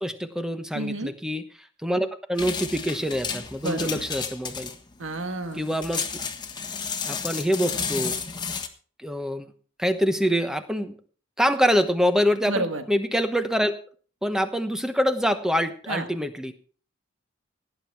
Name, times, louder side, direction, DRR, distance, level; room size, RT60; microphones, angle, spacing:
voice 1, 0.0-4.7 5.6-6.0 7.1-8.2 9.0-9.5 9.8-11.0 11.4-13.7 14.2-16.5, equal, 5° right, 9 dB, 1.0 m, -25 dB
voice 2, 0.7-1.1 3.6-4.0 5.0-5.7 12.5-12.8 15.9-16.1, right 2 dB, 65° right, 7 dB, 1.5 m, -30 dB
sound 1, 2.4-8.7, left 6 dB, 20° left, 1.3 m, -32 dB
17.0 x 9.3 x 4.7 m, 0.42 s
head